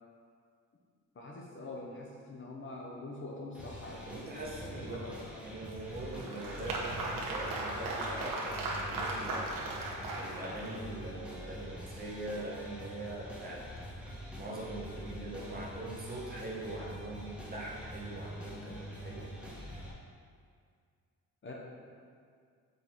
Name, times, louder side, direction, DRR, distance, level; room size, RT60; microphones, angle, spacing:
voice 1, 1.1-5.4 21.4-21.5, left 2 dB, 35° left, -2 dB, 0.8 m, -45 dB
sound 1, 3.5-19.9, equal, 5° right, 1.1 m, -45 dB
voice 2, 4.1-5.2 5.5-9.6 10.2-13.6 14.4-19.3, right 2 dB, 30° right, -4 dB, 0.9 m, -42 dB
Applause, 5.7-11.0, right 2 dB, 80° right, 1.0 m, -37 dB
5.5 x 4.1 x 4.4 m, 2.1 s
wide cardioid pair, 165°, 33 cm